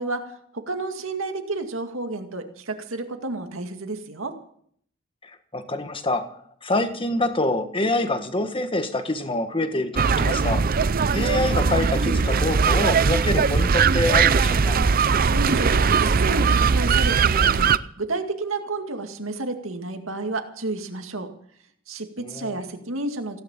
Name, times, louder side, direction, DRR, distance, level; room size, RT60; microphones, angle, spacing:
voice 1, 0.0-4.4 15.3-21.3 21.9-23.4, right 2 dB, 80° right, 5 dB, 2.1 m, -31 dB
voice 2, 5.2-6.2 6.6-10.6 11.1-14.8 22.2-22.6, left 2 dB, 25° left, 8 dB, 1.5 m, -26 dB
sound 1, 10.0-17.8, right 5 dB, 45° right, 0.5 m, -20 dB
16.5 x 10.5 x 7.3 m, 0.63 s
head